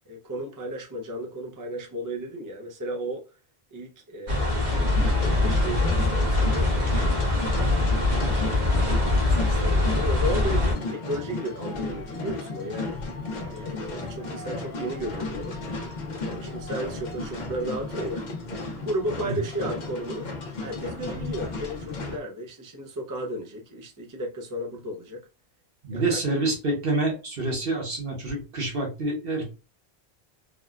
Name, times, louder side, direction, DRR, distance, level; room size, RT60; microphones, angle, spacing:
voice 1, 0.1-3.3 3.7-7.3 7.9-13.0 13.5-15.6 16.1-18.2 18.8-20.3 20.6-25.3 25.9-26.2, right 1 dB, 25° right, 0.4 m, -34 dB
sound 1, 4.3-10.7, left 2 dB, 80° right, 1.4 m, -23 dB
sound 2, 4.7-22.2, left 2 dB, 50° left, 0.7 m, -34 dB
voice 2, 25.8-29.4, right 2 dB, 60° right, 1.2 m, -27 dB
3.5 x 2.1 x 2.3 m
omnidirectional pair, 1.1 m